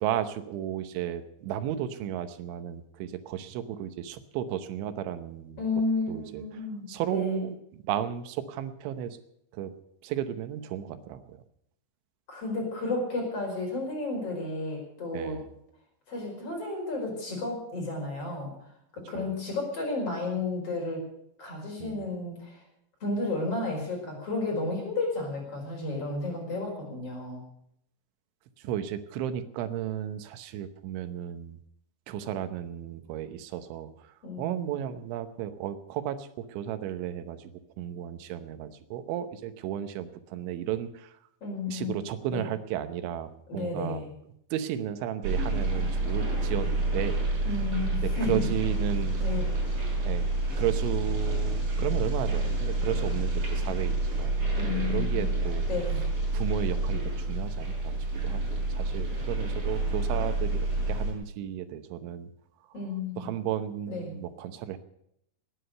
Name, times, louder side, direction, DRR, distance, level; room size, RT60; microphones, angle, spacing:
voice 1, 0.0-5.6 6.1-6.6 6.9-9.2 9.5-9.7 10.0-11.4 15.1-15.5 19.2-19.3 21.8-22.1 28.6-31.6 32.1-37.5 37.8-41.1 41.7-44.0 44.5-47.5 48.0-49.2 50.0-50.3 50.6-55.7 56.3-62.3 63.2-64.8, right 10 dB, 85° right, 10 dB, 3.4 m, -34 dB
voice 2, 5.6-7.4 12.3-15.4 16.1-18.5 18.9-21.0 21.4-22.6 23.0-27.4 34.2-34.7 41.4-42.0 42.3-42.4 43.5-44.1 47.5-48.4 49.2-49.5 54.6-55.3 55.7-56.0 62.7-63.3 63.9-64.2, left 3 dB, 30° left, 1 dB, 5.6 m, -32 dB
sound 1, 45.2-61.1, right 2 dB, 45° right, 5.7 m, -28 dB
19.0 x 10.0 x 6.7 m, 0.74 s
omnidirectional pair, 5.3 m